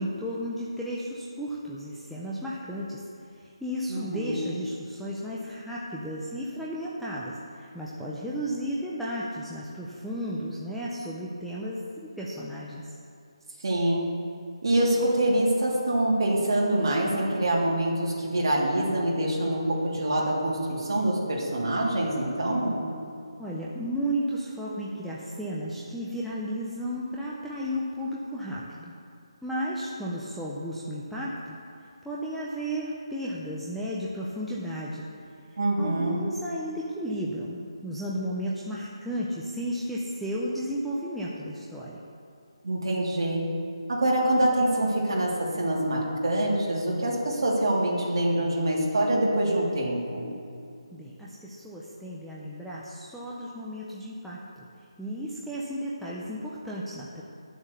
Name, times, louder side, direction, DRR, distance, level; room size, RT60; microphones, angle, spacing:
voice 1, 0.0-3.0 3.3-12.9 23.4-28.9 29.4-31.6 32.0-35.1 35.5-42.0 50.9-54.6 55.0-57.2, equal, ahead, -8 dB, 0.4 m, -34 dB
voice 2, 3.9-4.5 13.6-14.1 14.6-22.8 35.6-36.2 42.6-43.4 43.9-50.3, right 1 dB, 50° right, -4 dB, 3.1 m, -25 dB
12.0 x 7.1 x 6.7 m, 2.5 s
hypercardioid pair, 175°, 3 cm